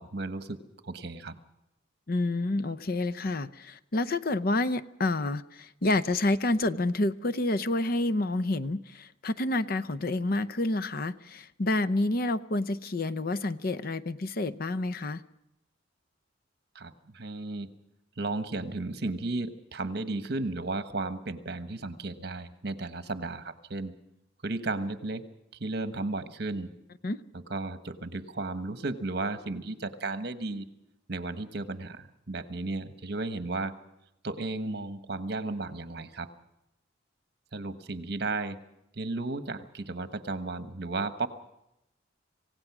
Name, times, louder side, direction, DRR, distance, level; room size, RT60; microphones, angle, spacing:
voice 1, 0.0-1.4 16.7-17.7 18.2-23.9 24.4-25.2 25.6-26.7 27.3-30.7 31.1-33.8 34.2-36.3 37.5-38.6 38.9-41.3, right 2 dB, 55° right, 10 dB, 1.3 m, -34 dB
voice 2, 2.1-15.2 27.0-27.2, left 2 dB, 50° left, 14 dB, 0.7 m, -29 dB
26.5 x 17.0 x 6.1 m, 0.84 s
head